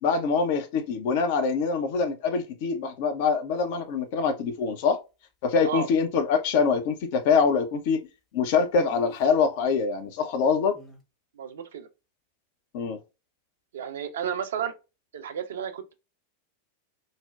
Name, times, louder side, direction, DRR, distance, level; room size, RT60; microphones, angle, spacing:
voice 1, 0.0-5.0 5.4-8.0 8.3-10.8 12.7-13.0, left 5 dB, 50° left, 0.6 m, -24 dB
Speech, 3.6-3.7 8.9-9.5 10.7-11.0, left 5 dB, 20° left, 0.8 m, -47 dB
voice 2, 11.4-11.9 13.7-14.7 15.1-15.9, right 8 dB, 60° right, 0.5 m, -32 dB
4.0 x 2.1 x 2.3 m
figure-of-eight pair, 90°, 0 cm